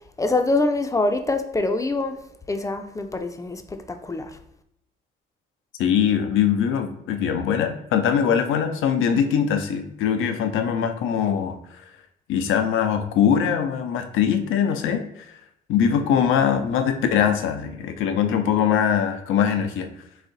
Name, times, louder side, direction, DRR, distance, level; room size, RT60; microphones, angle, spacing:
voice 1, 0.2-2.2 2.5-4.4, left 2 dB, 15° left, 0.4 m, -24 dB
voice 2, 5.8-11.6 12.3-15.0 15.7-19.9, left 8 dB, 85° left, 0.5 m, -22 dB
4.1 x 2.6 x 3.8 m
cardioid pair, 90°, 20 cm